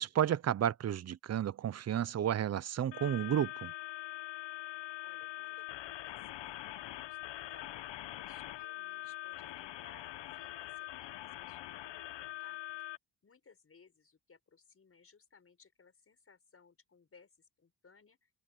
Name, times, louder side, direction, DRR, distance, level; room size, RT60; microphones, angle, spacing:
voice 1, 0.0-3.7, right 10 dB, 40° right, 0.4 m, -32 dB
sound 1, 2.9-13.0, left 15 dB, 85° left, 0.8 m, -44 dB
voice 2, 5.0-7.7 8.2-12.9 13.2-18.3, left 5 dB, 30° left, 6.4 m, -63 dB
open air
wide cardioid pair, 170°, 42 cm